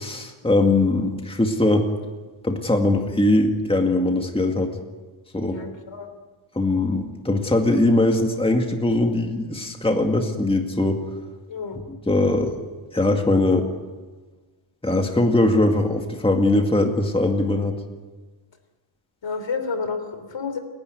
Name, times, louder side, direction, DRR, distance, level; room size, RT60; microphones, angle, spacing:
voice 1, 0.0-1.9 2.4-4.7 5.3-5.6 6.6-11.0 11.7-12.5 12.9-13.7 14.8-17.8, left 2 dB, 10° left, 3 dB, 2.0 m, -21 dB
voice 2, 5.4-6.1 11.5-11.8 19.2-20.6, left 5 dB, 65° left, 8 dB, 3.4 m, -30 dB
29.0 x 11.5 x 9.3 m, 1.3 s
wide cardioid pair, 100°, 48 cm